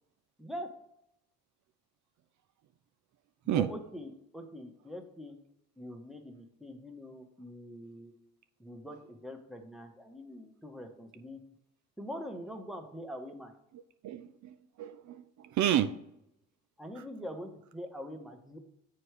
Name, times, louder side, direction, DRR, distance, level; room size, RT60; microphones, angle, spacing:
voice 1, 0.4-0.7 3.4-5.4 5.8-8.1 8.6-11.4 12.0-13.5 16.8-18.6, equal, ahead, 4 dB, 1.3 m, -43 dB
voice 2, 14.0-16.0, right 11 dB, 70° right, 10 dB, 0.5 m, -30 dB
7.4 x 4.7 x 4.8 m, 0.80 s
cardioid pair, 90°, 30 cm